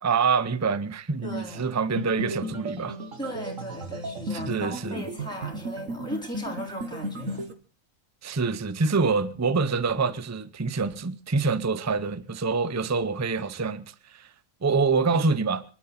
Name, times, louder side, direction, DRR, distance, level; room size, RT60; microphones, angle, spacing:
voice 1, 0.0-3.0 4.3-5.1 8.2-14.3 14.6-15.6, right 4 dB, 15° right, 0.5 m, -26 dB
voice 2, 1.2-1.8 3.2-7.5, equal, 5° left, 4.1 m, -37 dB
sound 1, 2.0-7.5, right 1 dB, 70° right, 1.9 m, -35 dB
26.0 x 12.0 x 4.3 m
omnidirectional pair, 1.4 m